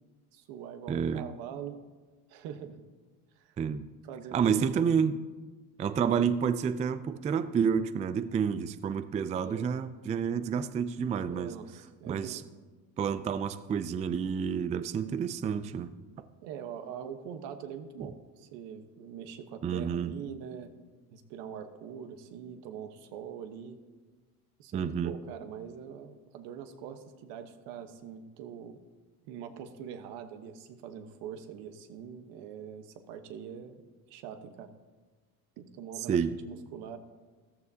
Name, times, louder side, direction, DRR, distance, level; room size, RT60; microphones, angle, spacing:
voice 1, 0.3-1.8 2.3-2.8 3.4-3.6 4.1-4.7 9.4-9.7 11.2-12.4 16.4-20.7 21.1-23.8 24.6-28.8 29.2-33.8 34.1-34.7 35.6-37.0, right 8 dB, 75° right, 8 dB, 1.2 m, -43 dB
voice 2, 0.9-1.3 3.6-3.9 4.3-5.2 5.8-11.5 12.1-12.4 13.0-15.9 19.6-20.1 24.7-25.1 36.1-36.3, right 7 dB, 20° right, 12 dB, 0.3 m, -29 dB
14.0 x 12.5 x 2.8 m, 1.3 s
supercardioid pair, 100°, 43 cm